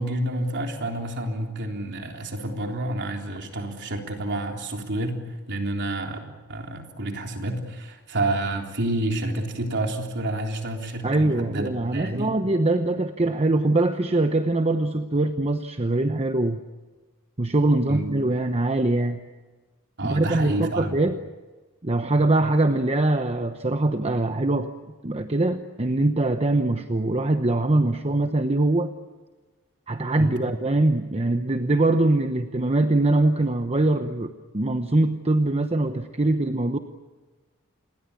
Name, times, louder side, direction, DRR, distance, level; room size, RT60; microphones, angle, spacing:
voice 1, 0.0-5.2 5.5-6.2 6.5-12.4 17.9-18.1 20.0-20.9 30.2-30.3, right 1 dB, 50° right, 3 dB, 3.6 m, -29 dB
voice 2, 11.0-16.6 17.4-19.2 20.0-21.2 21.8-24.7 25.0-28.9 29.9-36.8, right 2 dB, 30° right, 7 dB, 0.9 m, -23 dB
28.0 x 21.0 x 8.6 m, 1.2 s
head